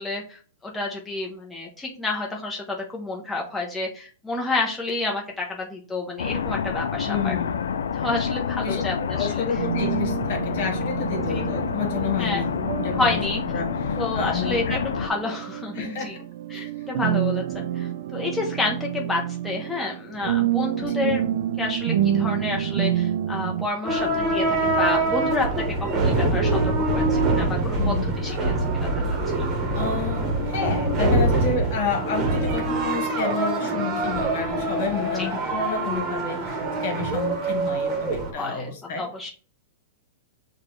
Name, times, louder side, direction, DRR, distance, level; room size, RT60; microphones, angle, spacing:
voice 1, 0.0-7.4 7.9-9.4 11.3-11.4 12.2-12.4 13.0-13.4 14.0-16.2 16.5-29.5 33.6-33.9 35.2-35.3 38.2-38.7 39.0-39.3, left 2 dB, 10° left, -2 dB, 0.7 m, -30 dB
sound 1, 6.2-15.1, left 6 dB, 90° left, 0.4 m, -28 dB
voice 2, 7.0-7.7 8.6-8.8 9.1-13.2 13.5-15.1 15.7-16.2 16.5-16.7 20.8-20.9 27.8-28.4 29.7-39.0, left 6 dB, 60° left, 3 dB, 1.4 m, -30 dB
sound 2, 9.6-23.7, right 11 dB, 65° right, 0.4 m, -28 dB
sound 3, 23.8-38.3, right 2 dB, 25° right, 1.1 m, -24 dB
6.5 x 2.4 x 3.1 m, 0.40 s
hypercardioid pair, 135°, 0 cm